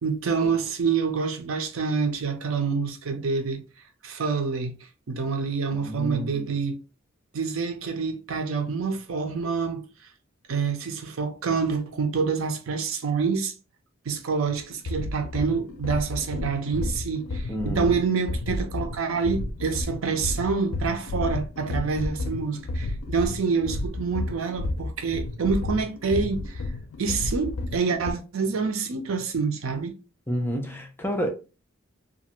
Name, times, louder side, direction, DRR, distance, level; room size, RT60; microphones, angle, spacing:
voice 1, 0.0-3.6 4.0-4.8 5.1-6.8 7.3-9.8 10.5-13.5 14.1-26.6 27.0-29.9, right 5 dB, 80° right, 0.5 m, -27 dB
voice 2, 5.7-6.5 17.5-18.0 30.3-31.3, equal, 10° left, 0.5 m, -30 dB
sound 1, 14.5-28.1, left 2 dB, 80° left, 0.4 m, -31 dB
2.5 x 2.4 x 2.9 m
head